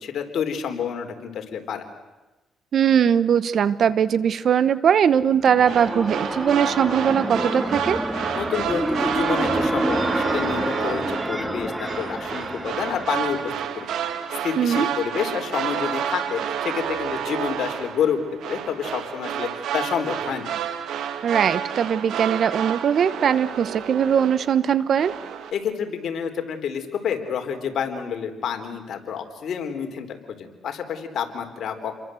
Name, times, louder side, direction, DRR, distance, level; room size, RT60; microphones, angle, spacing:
voice 1, 0.0-1.8 8.3-13.4 13.8-13.9 14.4-18.2 18.5-20.5 25.5-32.0, left 7 dB, 65° left, 5 dB, 3.9 m, -28 dB
voice 2, 2.7-8.0 14.6-14.9 21.2-25.1, right 8 dB, 60° right, 16 dB, 1.2 m, -20 dB
sound 1, 5.2-14.0, right 1 dB, 5° right, 2.0 m, -28 dB
sound 2, 5.6-24.7 25.0-25.5, right 9 dB, 75° right, 2.2 m, -30 dB
29.5 x 23.0 x 7.9 m, 1.1 s
cardioid pair, 90°, 0 cm